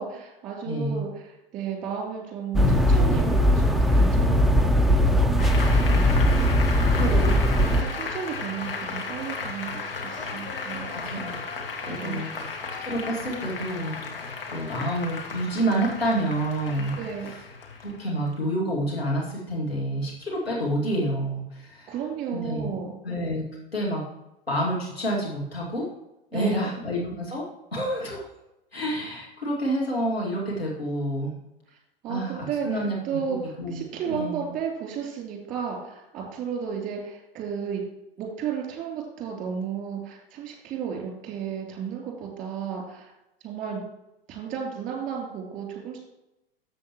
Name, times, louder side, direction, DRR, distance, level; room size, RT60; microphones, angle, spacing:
voice 1, 0.0-5.2 7.0-10.9 12.0-12.3 17.0-17.3 21.9-22.9 26.3-26.7 32.0-37.8 38.2-43.1 43.4-43.8 44.3-46.0, right 7 dB, 25° right, 0 dB, 3.1 m, -33 dB
voice 2, 0.6-1.0 5.9-6.4 10.9-11.3 11.8-14.0 14.5-17.0 17.8-21.9 22.3-22.7 23.0-23.4 23.7-24.0 24.5-25.9 26.3-28.2 28.7-31.3 32.1-34.5, right 1 dB, 85° left, -4 dB, 2.5 m, -28 dB
sound 1, 2.5-7.8, left 1 dB, ahead, 0.4 m, -20 dB
Applause, 5.4-18.4, left 4 dB, 65° left, 1.9 m, -35 dB
13.0 x 7.5 x 3.1 m, 0.91 s
figure-of-eight pair, 90°, 30 cm